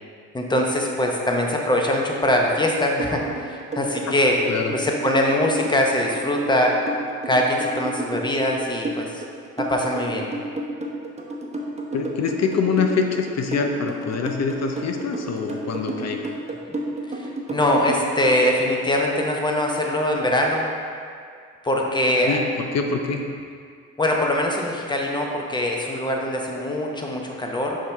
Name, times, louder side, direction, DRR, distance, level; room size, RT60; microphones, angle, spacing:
voice 1, 0.3-4.3 4.7-6.8 7.2-9.2 9.6-10.3 16.7-16.8 17.1-20.7 21.6-22.4 24.0-27.8, left 1 dB, 15° left, 0 dB, 0.8 m, -22 dB
sound 1, 3.0-18.4, right 2 dB, 20° right, 0.9 m, -31 dB
voice 2, 11.9-16.3 22.2-23.2, left 5 dB, 60° left, 4 dB, 0.6 m, -25 dB
5.6 x 5.1 x 3.4 m, 2.2 s
cardioid pair, 90°, 30 cm